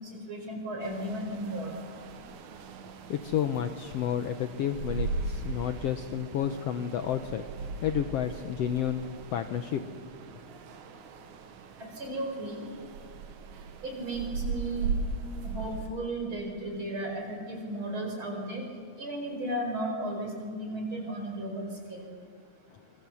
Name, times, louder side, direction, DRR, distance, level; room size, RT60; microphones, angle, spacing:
voice 1, 0.1-1.7 12.0-12.7 13.8-14.9 15.4-18.6 19.0-22.1, right 1 dB, 40° right, 1 dB, 5.7 m, -35 dB
sound 1, 0.8-15.9, right 4 dB, 70° right, 2.7 m, -38 dB
voice 2, 3.1-9.8, left 9 dB, 70° left, 9 dB, 1.6 m, -31 dB
27.0 x 23.5 x 7.1 m, 2.2 s
omnidirectional pair, 3.5 m